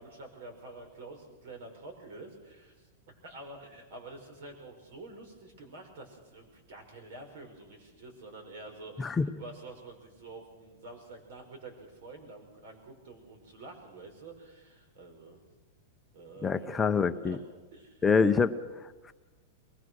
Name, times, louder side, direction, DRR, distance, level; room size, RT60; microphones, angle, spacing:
voice 1, 0.0-2.9 3.2-15.4 16.1-16.9 17.2-17.4 17.7-18.1, right 2 dB, 70° right, 5 dB, 5.8 m, -48 dB
voice 2, 9.0-9.3 16.4-17.4 18.0-18.6, left 5 dB, 15° left, 8 dB, 0.6 m, -25 dB
22.5 x 20.5 x 6.4 m, 1.2 s
supercardioid pair, 150°, 0 cm